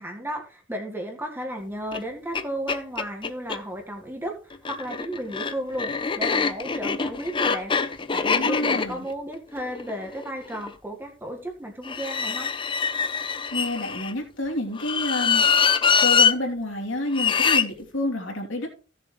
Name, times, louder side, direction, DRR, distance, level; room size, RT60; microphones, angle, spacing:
voice 1, 0.0-12.5, right 1 dB, 10° right, 2 dB, 1.5 m, -34 dB
sound 1, 1.9-2.0 2.3-2.4 2.7-3.6 4.5-10.7 11.8-14.1 14.8-16.3 17.1-17.7, left 6 dB, 25° left, 0.6 m, -24 dB
voice 2, 8.2-9.0 13.5-15.4 16.0-18.7, left 1 dB, 70° left, 0 dB, 3.1 m, -29 dB
16.0 x 7.0 x 3.1 m, 0.36 s
head